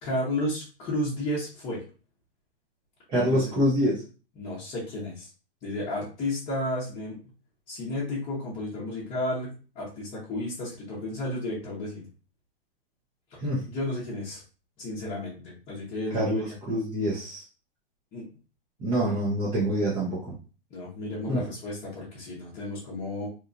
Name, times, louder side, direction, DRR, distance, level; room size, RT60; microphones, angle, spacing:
voice 1, 0.0-1.8 3.2-3.5 4.4-5.3 5.6-7.1 7.7-12.1 13.3-14.4 14.8-16.5 18.1-18.2 20.7-23.3, left 1 dB, 20° left, -9 dB, 0.8 m, -33 dB
voice 2, 3.1-4.0 13.4-13.6 16.1-16.4 16.7-17.4 18.8-20.3 21.3-21.4, equal, 15° right, -8 dB, 0.6 m, -25 dB
2.9 x 2.3 x 2.5 m, 0.36 s
hypercardioid pair, 150°, 29 cm